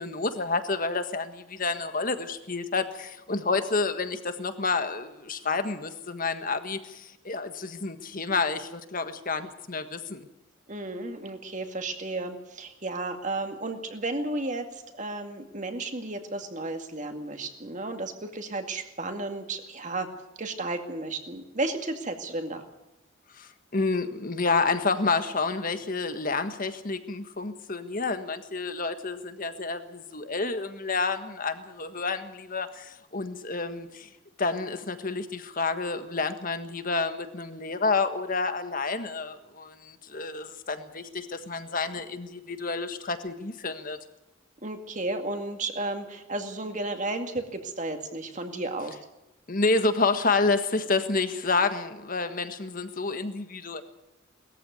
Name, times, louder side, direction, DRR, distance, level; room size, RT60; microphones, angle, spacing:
voice 1, 0.0-10.3 23.3-34.1 34.4-44.0 49.5-53.8, left 3 dB, 40° left, 9 dB, 1.5 m, -29 dB
voice 2, 10.7-20.1 20.4-22.6 44.6-49.0, right 2 dB, 35° right, 5 dB, 2.2 m, -33 dB
20.5 x 14.5 x 9.3 m, 0.94 s
head